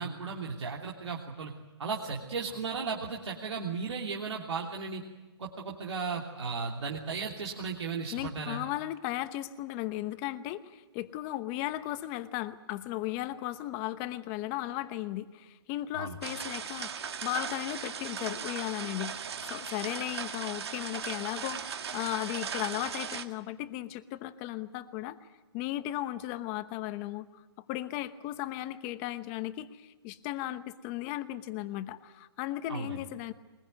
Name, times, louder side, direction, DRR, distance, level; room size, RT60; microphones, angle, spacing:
voice 1, 0.0-1.5 1.8-5.0 5.4-8.6 15.9-16.2 32.7-33.0, right 5 dB, 80° right, -1 dB, 3.0 m, -35 dB
voice 2, 8.1-19.2 19.5-25.3 25.5-27.4 27.7-33.3, left 15 dB, 25° left, 12 dB, 1.0 m, -36 dB
sound 1, 16.2-23.3, right 7 dB, 65° right, 2.0 m, -38 dB
22.5 x 21.0 x 9.3 m, 1.2 s
hypercardioid pair, 155°, 15 cm